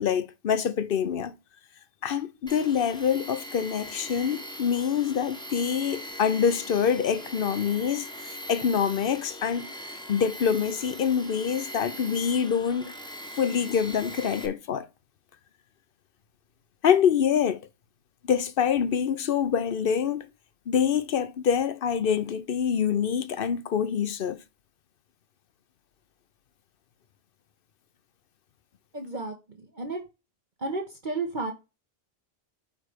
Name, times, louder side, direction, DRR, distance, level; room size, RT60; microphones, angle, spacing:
voice 1, 0.0-1.3 2.0-9.7 10.1-12.9 13.4-14.9 16.8-17.6 18.3-20.3 20.7-24.4, left 7 dB, 60° left, 0.9 m, -25 dB
Tools, 2.5-14.5, equal, 5° left, 1.0 m, -41 dB
voice 2, 28.9-30.0 30.6-31.5, right 3 dB, 45° right, 1.3 m, -32 dB
8.8 x 3.3 x 5.0 m
omnidirectional pair, 1.1 m